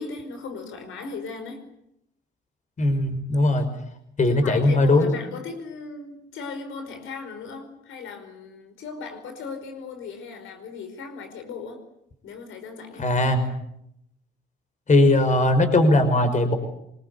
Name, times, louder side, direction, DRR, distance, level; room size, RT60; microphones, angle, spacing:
voice 1, 0.0-1.6 4.3-11.8 12.2-13.1, left 4 dB, 80° left, 6 dB, 5.0 m, -37 dB
voice 2, 2.8-3.7 4.2-5.1 13.0-13.5 14.9-16.6, left 2 dB, 40° left, 8 dB, 5.3 m, -19 dB
26.5 x 21.0 x 8.4 m, 0.78 s
cardioid pair, 90°, 20 cm